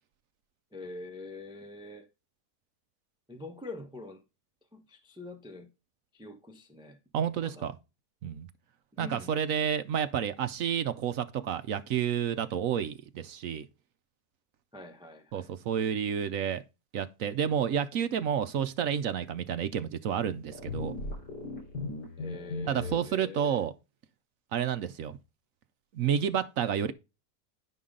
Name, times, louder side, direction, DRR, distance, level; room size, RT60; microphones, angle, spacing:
voice 1, 0.7-2.1 3.3-4.2 4.7-5.7 6.1-7.0 7.4-7.7 9.0-9.3 14.7-15.5 22.2-23.6, left 2 dB, 5° right, 0.9 m, -44 dB
voice 2, 7.1-7.8 8.2-8.5 9.0-13.7 15.3-16.6 16.9-20.9 22.7-23.7 24.5-25.2 25.9-26.9, right 8 dB, 65° right, 0.9 m, -30 dB
sound 1, 20.5-23.0, left 3 dB, 80° left, 4.7 m, -37 dB
10.0 x 5.7 x 3.7 m
omnidirectional pair, 1.8 m